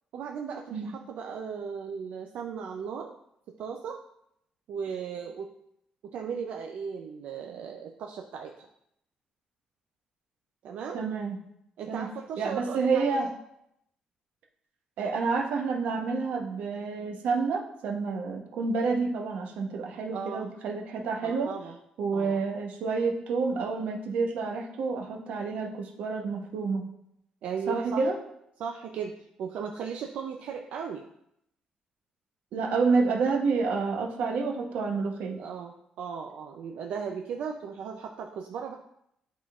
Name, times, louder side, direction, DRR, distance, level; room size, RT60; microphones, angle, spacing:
voice 1, 0.1-3.1 3.6-4.0 4.7-5.5 6.1-8.7 10.6-11.1 11.8-13.3 20.1-20.5 21.2-21.8 22.1-22.4 27.4-28.1 28.6-29.1 29.4-31.1 35.4-38.8, right 6 dB, 70° right, 2 dB, 0.5 m, -36 dB
voice 2, 10.9-11.4 11.9-12.1 12.4-13.3 15.0-21.5 22.0-26.9 27.7-28.2 32.5-35.4, right 4 dB, 85° right, 2 dB, 0.9 m, -29 dB
11.0 x 3.7 x 2.4 m, 0.77 s
cardioid pair, 170°, 2 cm